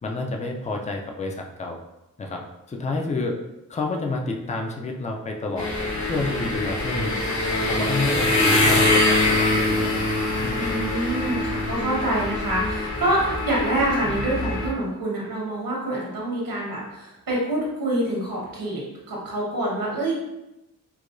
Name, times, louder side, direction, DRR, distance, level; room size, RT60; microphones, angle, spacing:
voice 1, 0.0-1.8 2.2-3.4 3.7-5.7 6.0-7.2 7.6-10.0 10.4-10.8 14.0-14.2, left 3 dB, 20° left, 2 dB, 0.3 m, -29 dB
sound 1, 5.6-14.7, left 2 dB, 55° left, 0.8 m, -23 dB
voice 2, 10.5-18.8 19.1-20.2, right 1 dB, 75° right, -4 dB, 1.3 m, -26 dB
4.7 x 2.2 x 2.5 m, 0.93 s
wide cardioid pair, 140°, 35 cm